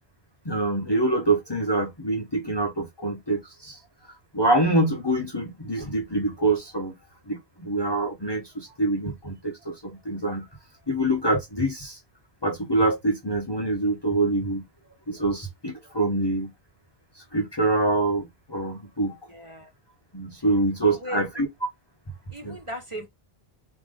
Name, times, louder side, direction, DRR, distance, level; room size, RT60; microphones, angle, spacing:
voice 1, 0.4-3.8 4.3-6.9 7.3-10.5 10.9-12.0 12.4-14.7 15.1-16.5 17.2-19.2 20.1-21.5 22.4-22.6, right 2 dB, 25° left, 0.9 m, -25 dB
voice 2, 19.3-19.7 20.8-21.4 22.3-23.1, equal, 30° right, 1.2 m, -37 dB
3.7 x 2.9 x 3.6 m
omnidirectional pair, 1.1 m